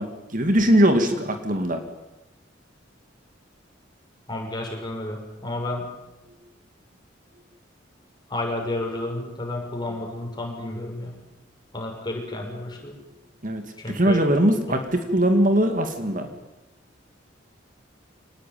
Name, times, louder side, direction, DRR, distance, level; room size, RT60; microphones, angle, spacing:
voice 1, 0.0-1.8 13.4-16.3, right 1 dB, 45° right, 7 dB, 2.3 m, -21 dB
voice 2, 4.3-5.9 8.3-11.1 11.7-13.0 13.8-14.2, left 2 dB, 25° left, 1 dB, 6.4 m, -31 dB
25.0 x 19.0 x 9.4 m, 1.0 s
head